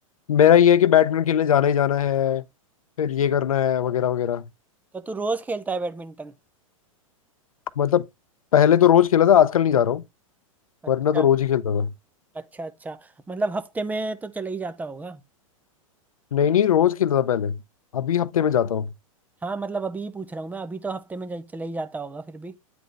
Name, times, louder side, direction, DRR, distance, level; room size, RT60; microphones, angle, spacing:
voice 1, 0.3-2.4 3.0-4.4 7.8-8.0 8.5-10.0 10.9-11.9 16.3-17.6 17.9-18.9, left 9 dB, 80° left, 0.6 m, -19 dB
voice 2, 4.9-6.3 11.1-11.3 12.3-13.0 13.3-15.2 19.4-22.6, right 3 dB, 10° right, 0.6 m, -31 dB
9.3 x 4.0 x 3.3 m
hypercardioid pair, 110°, 18 cm